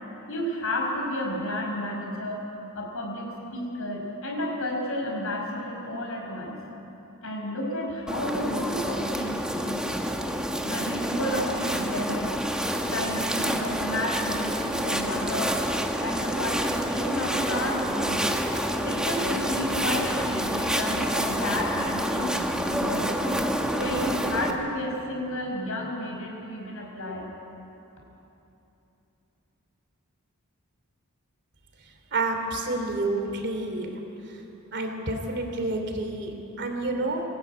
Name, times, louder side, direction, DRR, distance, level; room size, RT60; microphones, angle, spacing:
voice 1, 0.3-2.4 2.8-6.6 7.2-10.0 10.6-12.3 12.9-15.6 16.0-18.3 18.8-23.3 23.7-27.2, left 1 dB, 70° left, 0 dB, 5.4 m, -32 dB
sound 1, 8.1-24.5, equal, 5° right, 1.3 m, -28 dB
voice 2, 32.1-33.9 34.7-37.2, right 2 dB, 50° right, 4 dB, 3.0 m, -29 dB
22.0 x 18.0 x 9.3 m, 3.0 s
head